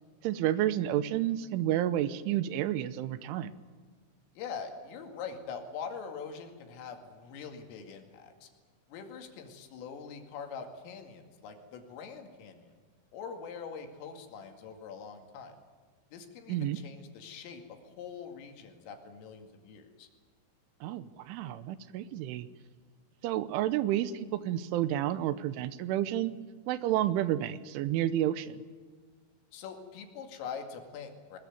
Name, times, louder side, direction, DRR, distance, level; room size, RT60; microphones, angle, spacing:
voice 1, 0.2-3.5 16.5-16.8 20.8-22.5 23.2-26.3 26.7-28.6, right 12 dB, 80° right, 14 dB, 3.2 m, -30 dB
voice 2, 4.4-8.5 8.9-12.7 13.1-15.6 16.1-20.1 29.5-31.4, left 6 dB, 85° left, 4 dB, 4.9 m, -43 dB
21.0 x 21.0 x 9.4 m, 1.5 s
omnidirectional pair, 5.7 m